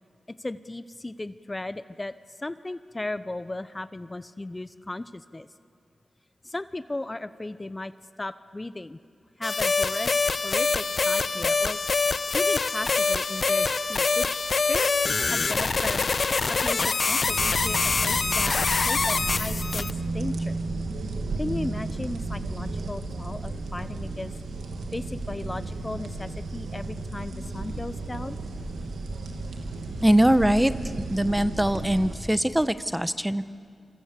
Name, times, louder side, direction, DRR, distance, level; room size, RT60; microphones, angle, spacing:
voice 1, 0.3-5.5 6.4-7.9 8.2-9.0 9.4-10.1 10.4-11.8 12.3-16.1 16.5-18.6 18.8-19.9 20.1-20.6 21.4-24.3 24.9-28.4, left 2 dB, 25° left, 13 dB, 0.8 m, -36 dB
sound 1, 9.4-19.9, left 4 dB, 60° left, 0.9 m, -25 dB
sound 2, 17.2-32.1, right 2 dB, 90° right, 2.5 m, -33 dB
voice 2, 30.0-30.7 31.0-33.4, right 1 dB, 10° right, 13 dB, 1.2 m, -22 dB
27.0 x 26.0 x 8.3 m, 2.3 s
cardioid pair, 40°, 0 cm